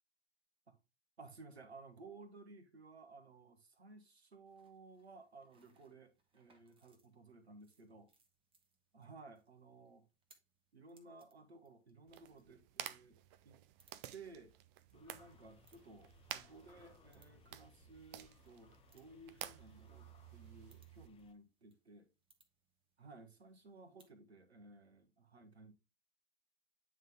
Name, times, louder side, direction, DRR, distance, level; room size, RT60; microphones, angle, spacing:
voice 1, 1.2-8.1 8.9-10.1 10.7-13.2 13.4-13.6 14.1-14.5 14.9-22.1 23.0-25.7, right 3 dB, 80° right, 1.3 m, -57 dB
sound 1, 4.5-24.2, right 4 dB, 15° right, 1.1 m, -76 dB
sound 2, 12.1-21.1, right 12 dB, 35° right, 0.5 m, -52 dB
sound 3, 14.9-21.3, left 7 dB, 20° left, 0.7 m, -67 dB
9.1 x 3.7 x 3.4 m
figure-of-eight pair, 90°, 32 cm